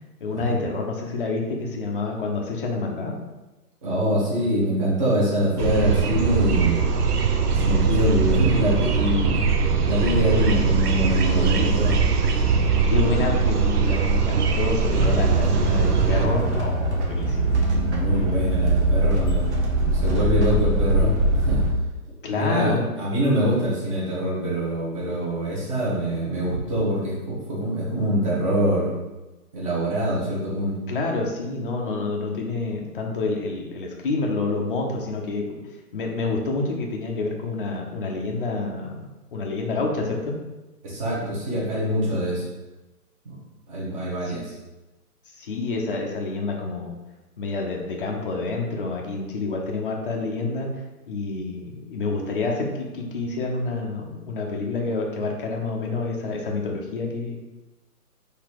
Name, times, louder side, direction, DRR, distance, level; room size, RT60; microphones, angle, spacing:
voice 1, 0.2-3.1 11.4-11.7 12.8-17.5 22.2-22.9 30.9-35.4 35.9-39.1 39.3-40.4 44.2-44.4 45.4-46.9 47.4-50.7 51.1-57.4, left 3 dB, 35° left, 0 dB, 0.6 m, -28 dB
voice 2, 3.8-6.8 7.5-12.0 17.2-19.5 20.0-21.1 21.5-21.6 22.3-28.9 29.5-30.8 40.8-42.4 43.2-43.3 43.7-44.5, equal, 20° right, -7 dB, 1.1 m, -24 dB
sound 1, 5.6-16.3, right 5 dB, 75° right, 0.8 m, -21 dB
sound 2, 14.9-21.7, right 1 dB, 45° right, 1.1 m, -22 dB
4.0 x 2.8 x 4.7 m, 1.1 s
hypercardioid pair, 160°, 47 cm